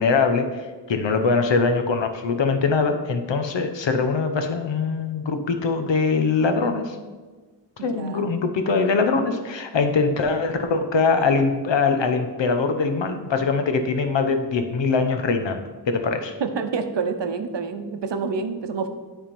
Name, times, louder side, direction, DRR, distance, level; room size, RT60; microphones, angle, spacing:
voice 1, 0.0-7.0 7.8-16.3, left 4 dB, 85° left, 7 dB, 0.8 m, -22 dB
voice 2, 7.8-8.3 16.4-18.9, right 5 dB, 75° right, 8 dB, 0.8 m, -28 dB
9.8 x 3.7 x 5.2 m, 1.4 s
wide cardioid pair, 110°, 43 cm